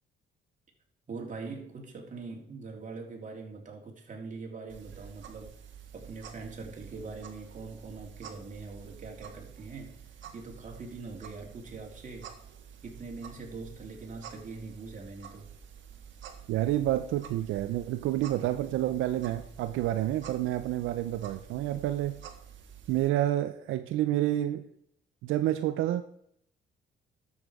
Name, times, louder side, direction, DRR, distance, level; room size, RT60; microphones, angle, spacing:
voice 1, 1.1-5.6 5.9-10.1 10.3-12.3 12.8-15.5, right 4 dB, 40° right, 0 dB, 3.0 m, -43 dB
sound 1, 4.7-23.1, right 8 dB, 70° right, 1.5 m, -49 dB
voice 2, 16.5-22.2 22.9-24.6 25.2-26.0, right 13 dB, 90° right, 9 dB, 0.6 m, -29 dB
12.0 x 7.2 x 4.8 m, 0.71 s
cardioid pair, 90°, 20 cm